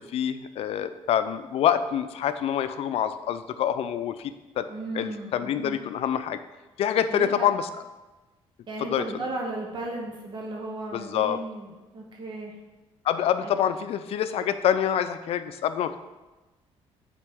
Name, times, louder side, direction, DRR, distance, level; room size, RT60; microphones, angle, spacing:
voice 1, 0.0-4.7 4.9-6.4 6.8-7.7 8.8-9.1 10.9-11.4 13.0-16.0, left 9 dB, 65° left, 11 dB, 0.4 m, -26 dB
voice 2, 4.7-5.8 7.1-7.5 8.7-12.5 13.4-13.6, right 2 dB, 45° right, 0 dB, 0.9 m, -35 dB
8.6 x 4.2 x 3.5 m, 1.1 s
cardioid pair, 105°, 11 cm